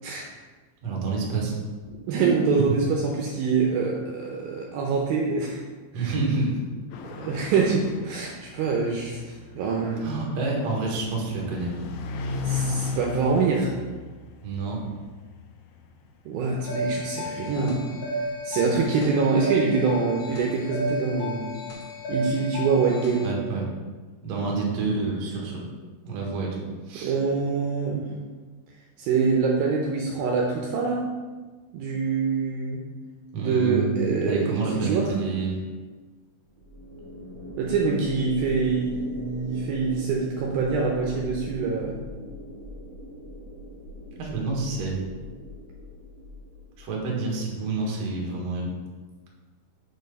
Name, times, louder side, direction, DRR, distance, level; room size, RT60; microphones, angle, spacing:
voice 1, 0.8-1.6 5.9-6.5 10.0-11.7 14.4-14.8 23.2-23.6 24.2-25.6 26.0-27.2 33.3-35.5 44.2-45.0 46.8-48.7, right 3 dB, 55° right, -2 dB, 2.0 m, -28 dB
voice 2, 2.1-5.6 5.9-6.1 7.2-10.1 12.4-13.7 16.3-17.8 18.4-21.5 22.1-23.3 27.0-28.1 29.0-31.0 31.7-32.8 33.4-35.1 37.6-42.0, right 4 dB, 75° right, -1 dB, 2.4 m, -25 dB
sound 1, 6.9-17.9, left 4 dB, 80° left, 2.3 m, -36 dB
sound 2, 16.6-23.3, equal, 50° left, 2.1 m, -33 dB
sound 3, 36.6-47.0, equal, 35° right, 2.4 m, -40 dB
6.7 x 4.5 x 5.3 m, 1.4 s
omnidirectional pair, 4.6 m